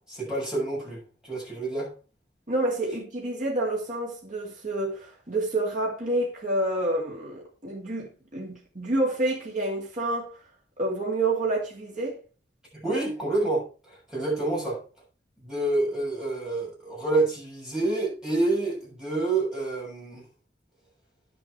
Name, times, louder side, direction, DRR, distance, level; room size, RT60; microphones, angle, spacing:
voice 1, 0.1-1.9 12.8-14.8 15.4-20.2, right 2 dB, 5° right, 7.0 m, -28 dB
voice 2, 2.5-10.4 10.8-12.2, right 2 dB, 45° right, 2.6 m, -28 dB
10.5 x 7.3 x 4.8 m
head